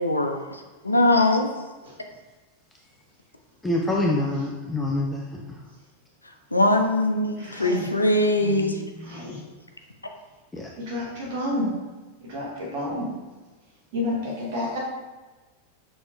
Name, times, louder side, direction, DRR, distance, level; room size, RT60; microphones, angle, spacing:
voice 1, 0.0-1.5 6.5-8.8, left 1 dB, 80° left, 5 dB, 0.4 m, -21 dB
voice 2, 3.6-5.6 8.4-9.3 10.5-10.7, left 2 dB, 10° left, -1 dB, 0.4 m, -27 dB
voice 3, 7.4-7.9 9.0-9.4 10.8-11.7 12.2-13.1 13.9-14.8, left 1 dB, 50° right, -3 dB, 1.0 m, -30 dB
6.2 x 2.8 x 2.4 m, 1.2 s
figure-of-eight pair, 90°, 0 cm